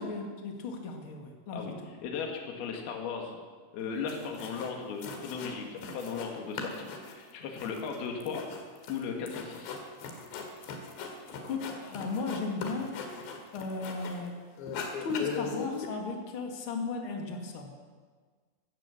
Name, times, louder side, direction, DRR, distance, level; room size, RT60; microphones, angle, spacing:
voice 1, 0.0-1.7 11.3-12.9 13.5-14.4 15.0-17.7, left 4 dB, 40° left, 2 dB, 2.1 m, -35 dB
voice 2, 1.5-3.4 3.7-8.5 8.9-9.7, left 5 dB, 65° left, 2 dB, 3.7 m, -37 dB
sound 1, 3.8-3.9 4.1-4.7 5.0-6.3 6.6-14.3 14.6-15.9, left 5 dB, 85° left, 4.0 m, -40 dB
15.5 x 12.5 x 7.2 m, 1.5 s
omnidirectional pair, 4.9 m